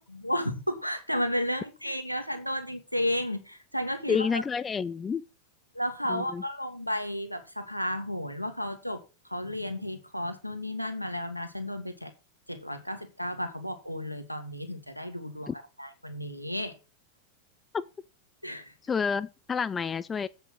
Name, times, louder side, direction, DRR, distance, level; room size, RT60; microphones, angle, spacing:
voice 1, 0.1-4.4 5.7-12.1 12.5-16.8 18.4-18.7, equal, 90° left, 1.7 m, -33 dB
voice 2, 4.1-5.2 6.1-6.4 15.5-15.6 17.7-17.8 18.9-20.3, left 6 dB, 20° left, 0.4 m, -29 dB
8.1 x 6.7 x 6.2 m
figure-of-eight pair, 90°, 0 cm